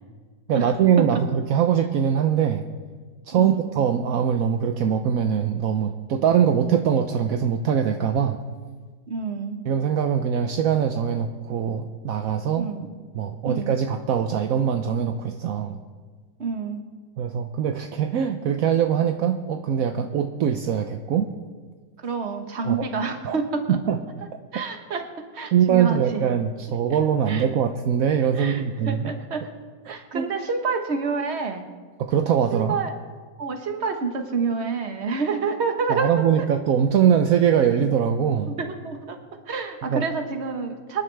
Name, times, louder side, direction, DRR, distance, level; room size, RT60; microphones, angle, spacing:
voice 1, 0.5-2.7 3.3-8.4 9.6-12.7 13.1-15.8 17.2-21.3 22.6-22.9 23.2-23.4 23.7-24.0 25.5-29.1 29.9-30.3 32.0-32.8 35.9-38.5 39.9-40.0, right 8 dB, 65° right, 6 dB, 0.9 m, -22 dB
voice 2, 3.3-3.7 9.1-9.6 12.6-12.9 13.4-13.7 16.4-16.8 22.0-23.8 24.5-25.0 25.3-26.2 27.3-27.5 28.4-29.5 29.8-31.6 32.5-32.9 33.4-36.1 38.5-39.2 39.5-41.0, right 5 dB, 40° right, 5 dB, 1.4 m, -28 dB
25.5 x 11.0 x 3.4 m, 1.5 s
omnidirectional pair, 2.0 m